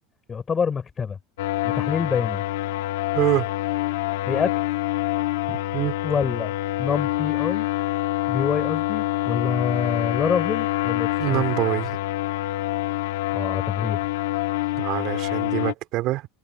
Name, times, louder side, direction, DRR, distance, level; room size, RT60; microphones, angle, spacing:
voice 1, 0.3-1.2 1.6-2.4 4.3-4.5 6.0-6.5 6.8-7.7 8.3-11.4 13.3-14.0, left 6 dB, 20° left, 5.4 m, -26 dB
sound 1, 1.4-15.7, left 16 dB, 90° left, 1.4 m, -26 dB
voice 2, 3.1-3.5 5.5-5.9 11.2-12.0 14.7-16.3, right 17 dB, 50° right, 2.8 m, -25 dB
supercardioid pair, 140°, 0 cm